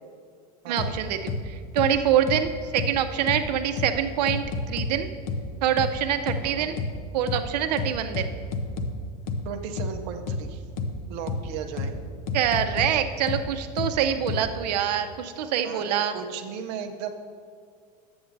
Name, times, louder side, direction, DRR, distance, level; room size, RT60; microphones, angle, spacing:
voice 1, 0.7-5.1 5.6-6.8 7.1-8.3 12.3-16.1, right 9 dB, 90° right, 7 dB, 0.6 m, -25 dB
sound 1, 0.8-0.9 1.3-1.4 1.8-1.9 2.3-2.4 2.8-2.9 3.3-3.4 3.8-3.9 4.3-4.9 5.3-5.4 5.8-5.9 6.3-6.4 6.8-6.9 7.3-7.4 7.8-8.9 9.3-9.4 9.8-9.9 10.3-10.4 10.8-10.9 11.3-11.4 11.8-11.9 12.3-12.9 13.3-13.4 13.8-13.9 14.3-14.4, left 3 dB, 55° left, 0.7 m, -29 dB
voice 2, 9.4-10.6 11.1-11.9 15.6-17.1, right 7 dB, 45° right, 3 dB, 0.6 m, -36 dB
11.0 x 7.8 x 2.6 m, 2.1 s
supercardioid pair, 175°, 20 cm